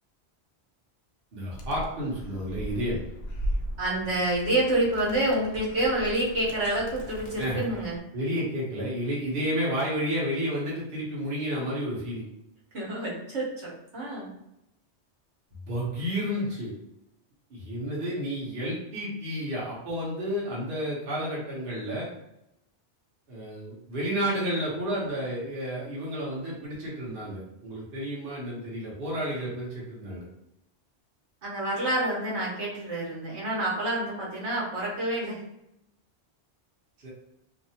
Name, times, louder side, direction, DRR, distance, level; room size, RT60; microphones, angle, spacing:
voice 1, 1.3-3.0 7.4-7.7 8.1-12.3 15.7-16.7 17.5-22.1 23.3-30.3 37.0-37.1, equal, 55° right, -6 dB, 1.1 m, -31 dB
Animal, 1.5-8.0, equal, 65° left, 0.8 m, -37 dB
voice 2, 3.8-8.0 12.7-14.3 31.4-35.4, right 1 dB, 75° right, -6 dB, 1.3 m, -28 dB
2.7 x 2.5 x 2.7 m, 0.84 s
omnidirectional pair, 1.2 m